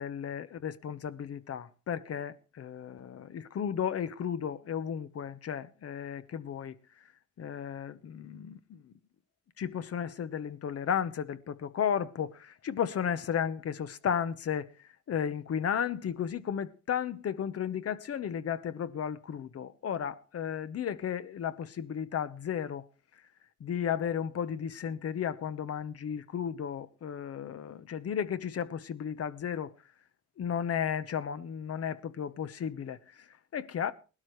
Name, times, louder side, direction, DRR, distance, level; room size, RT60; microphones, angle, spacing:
voice 1, 0.0-6.8 7.4-8.9 9.6-22.9 23.6-29.7 30.4-33.9, left 8 dB, 50° left, 0.9 m, -34 dB
19.0 x 12.5 x 3.2 m
cardioid pair, 90°, 30 cm